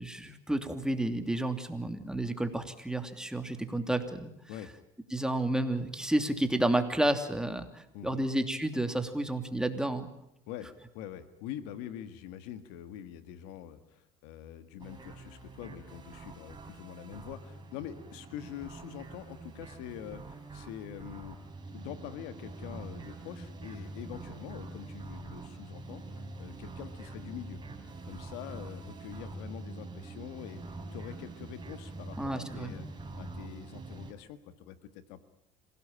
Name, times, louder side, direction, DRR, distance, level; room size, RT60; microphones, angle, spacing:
voice 1, 0.0-4.3 5.1-10.1 32.2-32.9, right 1 dB, 5° right, 7 dB, 3.0 m, -31 dB
voice 2, 10.5-21.4 21.7-27.6 28.0-32.9 33.2-35.2, left 10 dB, 90° left, 11 dB, 1.8 m, -45 dB
sound 1, 14.8-34.1, right 2 dB, 25° right, 4.4 m, -45 dB
27.0 x 17.5 x 8.9 m, 0.82 s
supercardioid pair, 90°, 17 cm